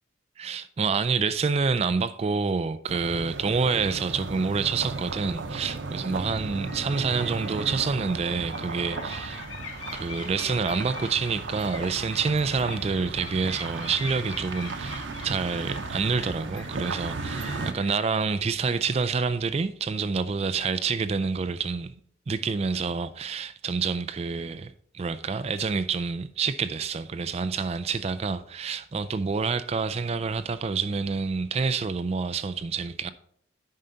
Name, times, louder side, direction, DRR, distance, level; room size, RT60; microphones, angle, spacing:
voice 1, 0.4-9.4 9.9-21.9 22.3-33.1, right 5 dB, 30° right, 0.3 m, -28 dB
sound 1, 2.9-17.7, right 3 dB, 65° right, 0.8 m, -35 dB
sound 2, 6.5-19.0, left 4 dB, 70° left, 1.3 m, -44 dB
9.1 x 5.5 x 3.9 m
head